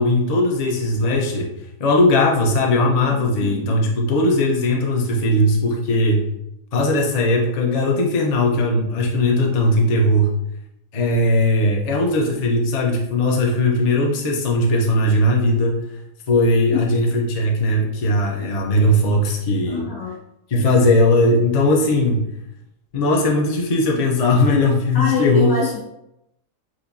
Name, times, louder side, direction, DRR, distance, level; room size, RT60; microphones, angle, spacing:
voice 1, 0.0-1.5 1.8-6.3 6.7-10.3 10.9-15.8 16.3-19.9 20.5-22.2 22.9-25.5, left 1 dB, 55° left, 0 dB, 0.4 m, -18 dB
voice 2, 3.4-3.7 19.7-20.2 24.9-25.8, left 5 dB, 80° left, -5 dB, 2.0 m, -25 dB
7.4 x 2.7 x 2.6 m, 0.84 s
omnidirectional pair, 1.8 m